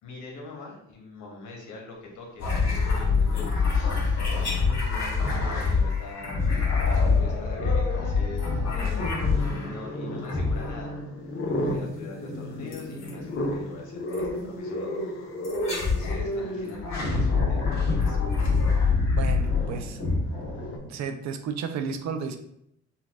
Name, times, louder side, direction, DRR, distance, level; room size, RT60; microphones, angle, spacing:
voice 1, 0.0-3.9 4.1-11.0 11.3-15.4 15.8-18.2, left 2 dB, 80° left, 0 dB, 1.0 m, -43 dB
sound 1, 2.4-9.8 10.2-11.0 12.7-13.1 14.1-14.3 15.4-16.2 16.7-21.0, left 4 dB, 60° left, 1.3 m, -25 dB
Growling, 3.6-4.6 5.1-5.8 6.2-20.8, left 1 dB, 45° left, 0.7 m, -34 dB
voice 2, 19.1-20.0 20.8-22.4, right 6 dB, 65° right, 8 dB, 0.5 m, -33 dB
4.0 x 2.2 x 2.3 m, 0.75 s
cardioid pair, 90°, 30 cm